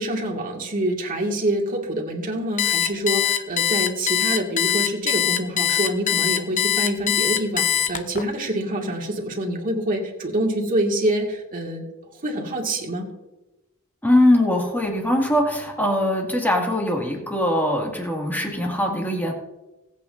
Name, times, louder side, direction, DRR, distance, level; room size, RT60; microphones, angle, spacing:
voice 1, 0.0-11.9 12.2-13.1, right 1 dB, 40° right, 1 dB, 2.0 m, -26 dB
Alarm, 2.6-8.2, left 10 dB, 40° left, 0.7 m, -22 dB
voice 2, 14.0-19.3, left 1 dB, 10° left, 0 dB, 2.1 m, -21 dB
21.5 x 8.5 x 2.6 m, 1.0 s
head